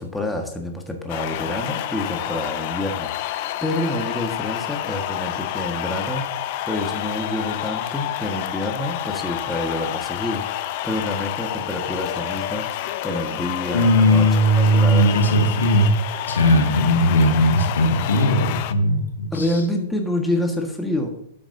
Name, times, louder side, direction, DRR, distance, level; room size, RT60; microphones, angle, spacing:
voice 1, 0.0-14.3 14.6-15.1 19.3-21.1, left 1 dB, 5° left, 2 dB, 1.6 m, -28 dB
sound 1, 1.1-18.7, left 13 dB, 50° left, 0.6 m, -29 dB
voice 2, 13.7-15.9 16.3-19.6, equal, 75° left, 3 dB, 2.0 m, -18 dB
12.0 x 8.5 x 2.8 m, 0.68 s
figure-of-eight pair, 110°, 0 cm